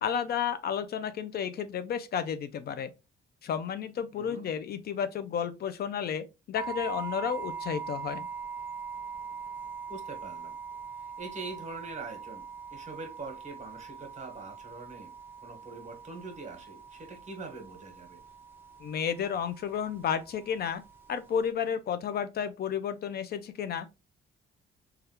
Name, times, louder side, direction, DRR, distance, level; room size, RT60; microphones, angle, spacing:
voice 1, 0.0-2.9 3.4-8.3 18.8-20.8 21.1-23.9, left 8 dB, 55° left, 0.4 m, -32 dB
voice 2, 4.2-4.5 9.9-10.5 11.0-12.4 12.7-15.1 15.4-18.2, right 3 dB, 35° right, 1.1 m, -43 dB
sound 1, 6.5-21.5, right 6 dB, 10° right, 0.6 m, -42 dB
3.3 x 2.3 x 2.8 m
cardioid pair, 90°, 20 cm